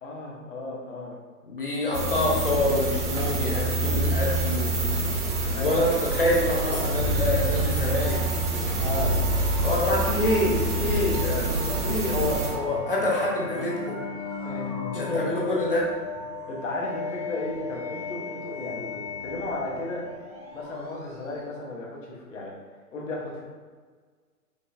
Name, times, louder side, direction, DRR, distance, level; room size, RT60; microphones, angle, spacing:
voice 1, 0.0-1.1 1.8-1.9 5.4-5.8 8.8-9.2 9.7-9.9 11.1-12.1 14.4-15.8 16.5-20.0 20.5-22.5 22.9-23.4, left 2 dB, 55° left, -2 dB, 1.0 m, -34 dB
voice 2, 1.5-4.7 5.5-5.9 6.2-8.2 9.6-14.0 14.9-15.8, left 2 dB, 40° left, -3 dB, 0.5 m, -26 dB
sound 1, 1.9-12.5, right 2 dB, 70° right, 1.1 m, -27 dB
sound 2, 4.0-21.5, left 3 dB, 25° right, 0.5 m, -38 dB
sound 3, 6.7-13.3, right 1 dB, 85° left, 1.2 m, -32 dB
5.2 x 2.4 x 2.6 m, 1.5 s
hypercardioid pair, 175°, 46 cm